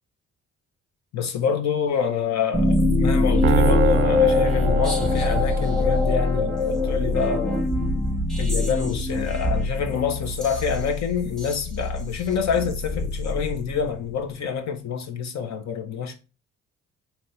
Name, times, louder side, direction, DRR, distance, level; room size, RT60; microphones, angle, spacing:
voice 1, 1.1-7.7 8.4-16.1, left 7 dB, 65° left, 0.9 m, -27 dB
sound 1, 2.5-14.1, left 2 dB, ahead, 0.8 m, -23 dB
Piano, 3.4-5.9, right 9 dB, 40° right, 0.4 m, -26 dB
4.1 x 3.0 x 3.2 m
cardioid pair, 90°, 30 cm